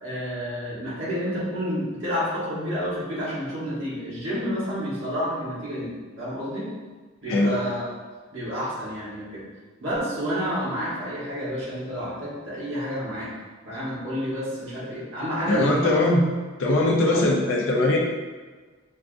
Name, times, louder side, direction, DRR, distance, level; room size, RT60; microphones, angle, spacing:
voice 1, 0.0-6.7 7.2-7.9 8.3-9.4 9.8-13.3 13.6-16.1 17.1-17.2, equal, 65° right, -9 dB, 1.2 m, -29 dB
voice 2, 15.5-16.2 16.6-18.0, left 2 dB, 65° left, -2 dB, 0.5 m, -21 dB
5.5 x 2.4 x 2.5 m, 1.4 s
head